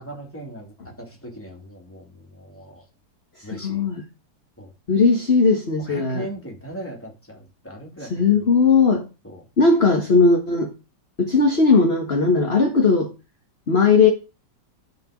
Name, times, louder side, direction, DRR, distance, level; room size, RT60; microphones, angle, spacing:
voice 1, 0.0-2.8 3.4-3.9 4.6-4.7 5.8-8.5 9.2-9.5, equal, 5° left, 3.1 m, -39 dB
voice 2, 3.6-4.0 4.9-6.2 8.1-9.0 9.6-10.7 11.2-13.1 13.7-14.1, left 4 dB, 40° left, 1.7 m, -17 dB
12.0 x 5.3 x 5.2 m
omnidirectional pair, 1.9 m